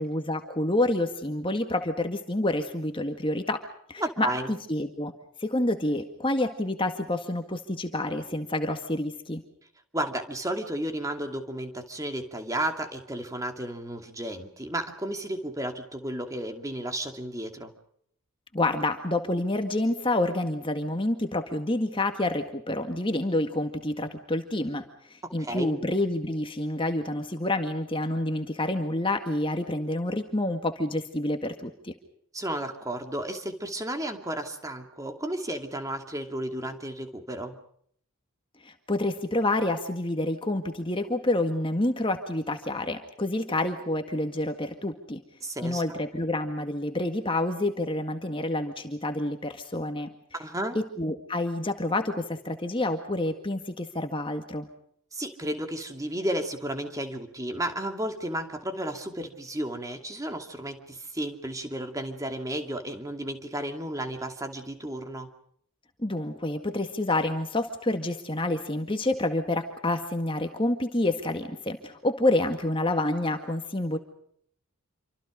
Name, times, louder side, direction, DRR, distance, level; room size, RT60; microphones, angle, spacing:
voice 1, 0.0-3.6 3.9-5.1 5.4-9.4 18.5-31.9 38.6-45.2 45.6-50.1 50.8-54.7 66.0-74.0, left 1 dB, 25° left, 6 dB, 1.8 m, -28 dB
voice 2, 4.0-4.5 9.9-17.7 25.4-25.8 32.3-37.6 45.4-45.8 50.4-50.8 55.1-65.3, right 1 dB, 15° right, 5 dB, 2.6 m, -33 dB
28.5 x 25.5 x 5.1 m, 0.65 s
head